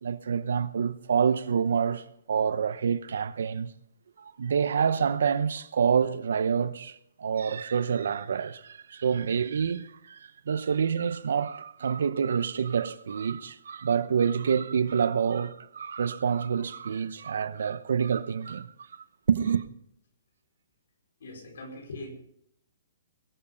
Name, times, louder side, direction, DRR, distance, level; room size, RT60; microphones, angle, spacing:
voice 1, 0.0-3.7 4.2-18.7 18.9-19.6, right 7 dB, 75° right, 0.8 m, -27 dB
voice 2, 21.2-22.1, left 2 dB, 75° left, 4.7 m, -41 dB
20.5 x 8.7 x 5.3 m
hypercardioid pair, 160°, 0 cm